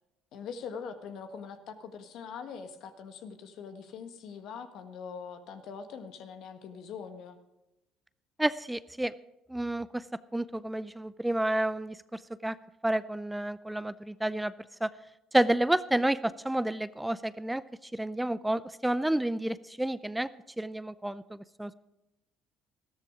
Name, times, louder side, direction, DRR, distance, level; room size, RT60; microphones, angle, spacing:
voice 1, 0.3-7.4, left 6 dB, 65° left, 8 dB, 1.4 m, -43 dB
voice 2, 8.4-9.1 9.5-10.0 10.3-12.6 12.8-14.5 14.8-14.9 15.3-20.3 20.6-21.7, right 1 dB, 10° right, 17 dB, 0.5 m, -30 dB
14.0 x 13.0 x 4.9 m, 0.95 s
hypercardioid pair, 65°, 0 cm